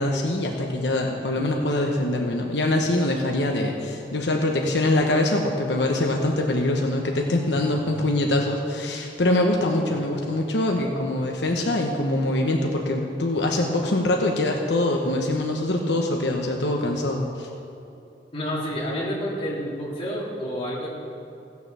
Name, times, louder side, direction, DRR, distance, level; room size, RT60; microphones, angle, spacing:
voice 1, 0.0-17.5, left 1 dB, 85° left, 1 dB, 1.1 m, -24 dB
voice 2, 18.3-20.9, equal, 35° left, -6 dB, 3.3 m, -29 dB
16.5 x 6.9 x 6.9 m, 2.8 s
head